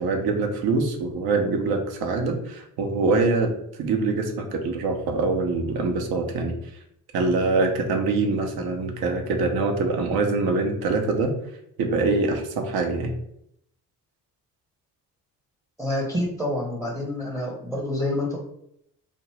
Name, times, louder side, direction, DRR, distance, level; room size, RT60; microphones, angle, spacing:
voice 1, 0.0-6.6 7.1-11.3 11.8-13.1, right 3 dB, 50° right, 3 dB, 0.7 m, -24 dB
voice 2, 15.8-18.4, left 1 dB, 5° right, -2 dB, 0.8 m, -27 dB
2.6 x 2.1 x 3.1 m, 0.73 s
figure-of-eight pair, 40°, 47 cm